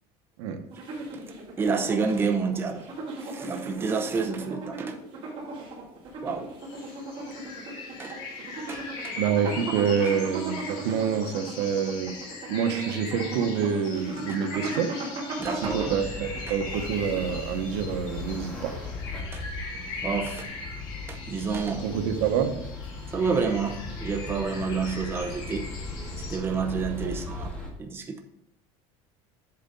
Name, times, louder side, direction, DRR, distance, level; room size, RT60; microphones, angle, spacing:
sound 1, 0.7-17.6, right 2 dB, 40° right, 2.3 m, -37 dB
voice 1, 1.6-2.9 3.2-4.9 6.2-6.5 8.0-8.1 8.7-8.8 15.4-15.9 19.3-19.4 20.0-20.4 21.3-21.8 23.1-25.7 26.3-27.5 27.8-28.2, right 5 dB, 15° right, 4 dB, 0.7 m, -28 dB
sound 2, 6.6-26.4, left 3 dB, 75° left, 2.2 m, -41 dB
voice 2, 9.2-12.2 12.5-15.0 15.5-18.8 21.8-22.6 27.0-27.2, right 7 dB, 85° right, 6 dB, 1.0 m, -27 dB
sound 3, 15.6-27.7, left 2 dB, 5° left, 1.7 m, -38 dB
7.9 x 3.9 x 5.2 m, 0.78 s
cardioid pair, 165°, 14 cm